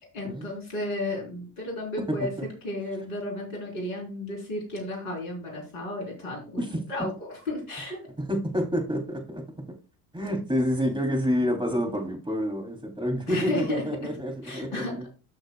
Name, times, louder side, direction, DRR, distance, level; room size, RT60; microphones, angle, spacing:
voice 1, 0.1-2.3 2.6-8.0 13.3-13.8 14.4-14.9, left 2 dB, 65° left, 0 dB, 4.4 m, -33 dB
voice 2, 8.3-9.4 10.1-15.0, equal, 10° right, 2 dB, 3.4 m, -28 dB
14.0 x 6.3 x 2.4 m, 0.32 s
figure-of-eight pair, 55°, 43 cm